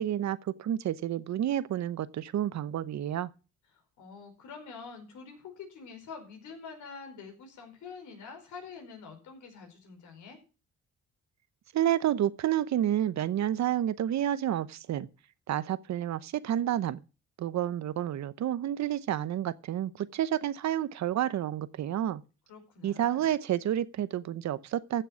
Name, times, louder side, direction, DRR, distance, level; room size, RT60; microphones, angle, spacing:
voice 1, 0.0-3.3 11.7-15.1 15.5-17.0 17.4-22.2 22.8-25.0, right 11 dB, 65° right, 0.9 m, -30 dB
voice 2, 3.7-10.4 22.5-23.3, left 5 dB, 75° left, 4.9 m, -46 dB
14.5 x 6.8 x 6.3 m
cardioid pair, 90°, 30 cm